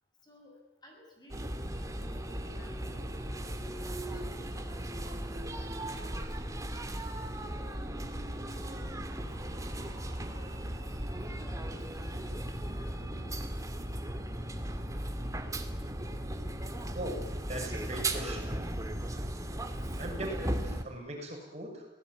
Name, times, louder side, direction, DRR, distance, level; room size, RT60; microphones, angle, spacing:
voice 1, 0.8-4.2 4.5-4.7 4.9-6.2 7.2-11.0 11.3-13.4 13.8-13.9 17.0-17.1, left 1 dB, 25° left, 1 dB, 7.5 m, -57 dB
sound 1, 1.3-20.8, right 1 dB, 20° right, 2.3 m, -37 dB
voice 2, 16.9-18.5 20.0-21.9, right 1 dB, 40° right, 1 dB, 7.0 m, -40 dB
26.5 x 18.5 x 9.7 m, 0.89 s
head